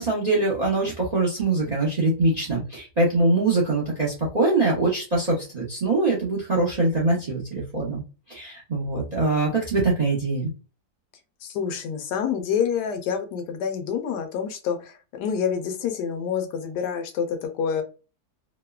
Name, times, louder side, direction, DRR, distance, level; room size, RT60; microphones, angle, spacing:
voice 1, 0.0-8.0 8.3-10.5, right 2 dB, 50° right, -3 dB, 0.4 m, -23 dB
voice 2, 11.4-17.8, left 7 dB, 90° left, 6 dB, 1.2 m, -27 dB
3.0 x 2.0 x 2.3 m, 0.33 s
omnidirectional pair, 1.7 m